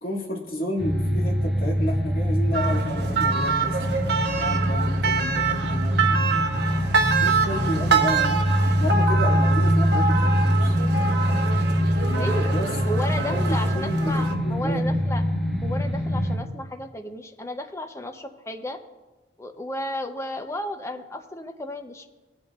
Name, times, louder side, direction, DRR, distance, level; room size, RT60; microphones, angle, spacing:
voice 1, 0.0-3.8 4.4-6.6 7.2-8.4 8.8-10.8 12.0-12.7 13.2-13.4 13.7-14.8, equal, 55° left, -2 dB, 2.0 m, -32 dB
sound 1, 0.8-16.4, equal, ahead, 1.1 m, -24 dB
sound 2, 2.5-14.3, right 4 dB, 65° right, 1.1 m, -26 dB
voice 2, 4.8-5.3 12.1-12.5 12.9-15.2 15.6-18.8 19.4-22.1, left 1 dB, 15° left, 6 dB, 0.6 m, -33 dB
17.5 x 8.6 x 2.4 m, 1.2 s
head